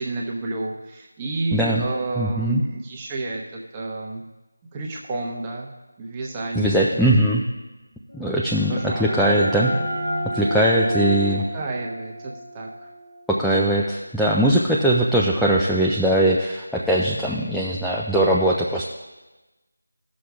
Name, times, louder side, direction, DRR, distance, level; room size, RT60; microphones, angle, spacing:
voice 1, 0.0-4.2 4.7-5.7 6.0-7.1 8.7-9.2 11.5-12.9, right 2 dB, 15° right, -2 dB, 0.9 m, -30 dB
voice 2, 1.5-1.9 2.2-2.6 6.6-7.4 8.1-9.7 10.3-11.4 13.3-18.8, right 1 dB, ahead, -6 dB, 0.3 m, -20 dB
sound 1, 8.2-13.7, equal, 65° left, 2.0 m, -30 dB
16.5 x 6.3 x 2.3 m, 1.1 s
figure-of-eight pair, 165°, 0 cm